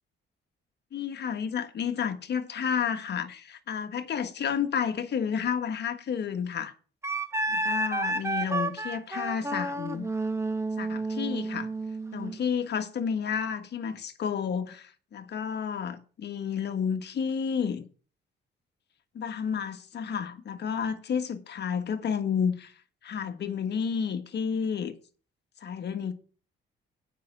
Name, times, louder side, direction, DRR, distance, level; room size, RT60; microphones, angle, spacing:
voice 1, 0.9-6.7 7.5-10.1 10.8-11.7 12.1-17.9 19.1-22.7 23.0-24.9 25.6-26.1, left 7 dB, 60° left, 1.4 m, -31 dB
Wind instrument woodwind instrument, 7.0-12.4, right 2 dB, 15° right, 1.2 m, -31 dB
8.4 x 5.7 x 7.8 m
cardioid pair, 90°, 20 cm